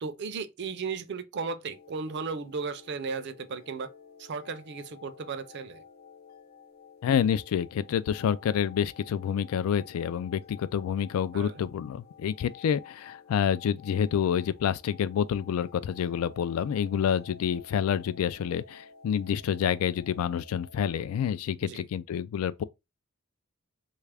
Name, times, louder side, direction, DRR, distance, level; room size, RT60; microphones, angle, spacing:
voice 1, 0.0-3.9 4.2-5.8 11.3-11.6 21.6-21.9, right 4 dB, 55° right, 0.4 m, -35 dB
sound 1, 1.7-20.9, left 6 dB, 50° left, 0.6 m, -52 dB
voice 2, 7.0-22.6, left 8 dB, 90° left, 0.3 m, -28 dB
3.2 x 2.4 x 3.3 m
head